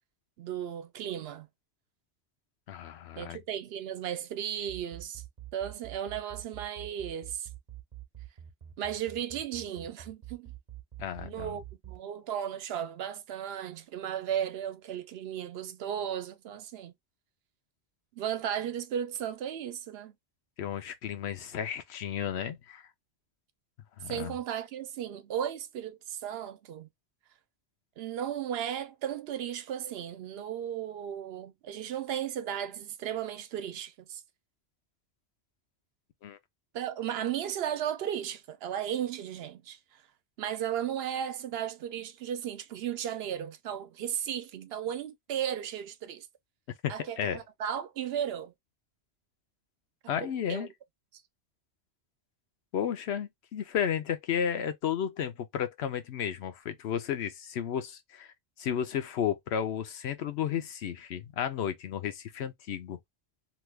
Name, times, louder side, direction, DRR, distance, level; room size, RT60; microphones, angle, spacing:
voice 1, 0.4-1.5 3.2-5.2 5.5-7.5 8.8-10.5 11.2-16.9 18.1-20.1 24.1-26.9 28.0-34.2 36.7-39.8 40.4-46.3 46.9-48.5 50.1-50.7, right 9 dB, 70° right, 0.8 m, -35 dB
voice 2, 2.7-3.4 11.0-11.6 20.6-22.8 24.0-24.3 36.2-36.4 46.8-47.4 50.1-50.7 52.7-58.3 58.6-63.0, left 9 dB, 80° left, 0.9 m, -33 dB
sound 1, 4.6-12.0, right 13 dB, 45° right, 0.9 m, -45 dB
2.9 x 2.3 x 3.2 m
omnidirectional pair, 1.1 m